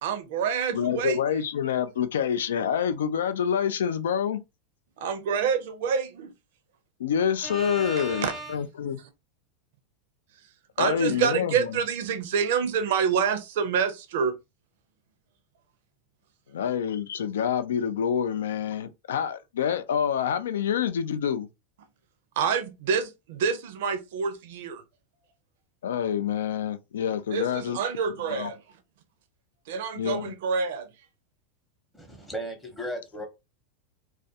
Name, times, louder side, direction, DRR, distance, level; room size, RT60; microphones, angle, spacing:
voice 1, 0.0-1.2 5.0-6.3 8.1-8.3 10.8-14.3 22.4-24.8 27.3-28.6 29.7-30.9, right 6 dB, 70° right, 0.5 m, -27 dB
voice 2, 0.7-4.4 7.0-9.0 10.8-11.8 16.5-21.5 25.8-27.8 28.3-28.5 30.0-30.3, left 8 dB, 90° left, 0.3 m, -27 dB
voice 3, 7.4-8.6 31.9-33.3, right 1 dB, 10° left, 0.7 m, -36 dB
2.3 x 2.1 x 2.7 m
hypercardioid pair, 115°, 0 cm